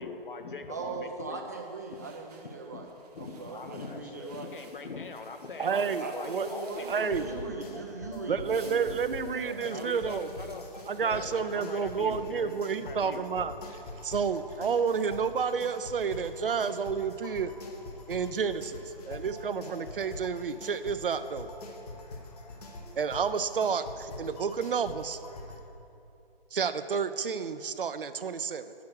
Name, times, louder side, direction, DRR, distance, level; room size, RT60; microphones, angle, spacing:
voice 1, 0.0-1.4 1.9-2.1 3.1-7.1 9.6-10.6 11.0-13.2, left 4 dB, 60° left, 6 dB, 0.9 m, -42 dB
voice 2, 0.7-2.9 3.2-4.5 5.6-9.9, right 3 dB, 20° right, 2 dB, 0.5 m, -39 dB
sound 1, 1.5-7.9 8.2-12.9, right 4 dB, 40° right, 1.0 m, -57 dB
voice 3, 5.6-6.5 6.9-7.3 8.3-10.3 10.9-17.5 18.1-21.5 23.0-25.2 26.5-28.7, right 6 dB, 65° right, 12 dB, 0.6 m, -30 dB
sound 2, 6.7-25.6, left 2 dB, 40° left, 1.2 m, -45 dB
9.3 x 6.0 x 6.3 m, 2.7 s
figure-of-eight pair, 145°, 30 cm